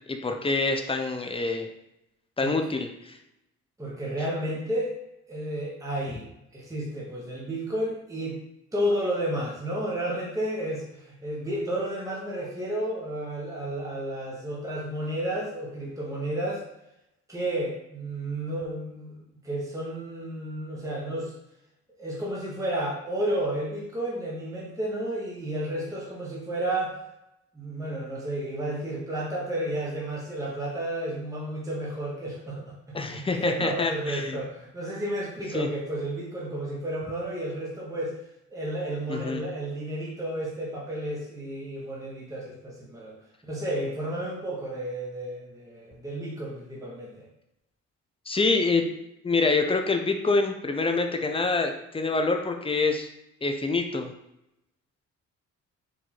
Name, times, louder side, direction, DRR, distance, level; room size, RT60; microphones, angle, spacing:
voice 1, 0.1-1.7 2.4-3.2 32.9-34.4 35.5-35.7 39.1-39.4 48.3-48.9 49.2-53.1 53.4-54.1, left 3 dB, 20° left, 4 dB, 0.6 m, -26 dB
voice 2, 2.4-2.7 3.8-5.0 5.3-6.2 6.5-8.4 8.7-16.6 17.3-21.3 22.0-27.0 27.5-32.7 33.0-38.2 38.5-43.1 43.5-47.3, right 1 dB, 10° right, -4 dB, 1.1 m, -32 dB
4.8 x 2.6 x 4.2 m, 0.85 s
cardioid pair, 90°, 30 cm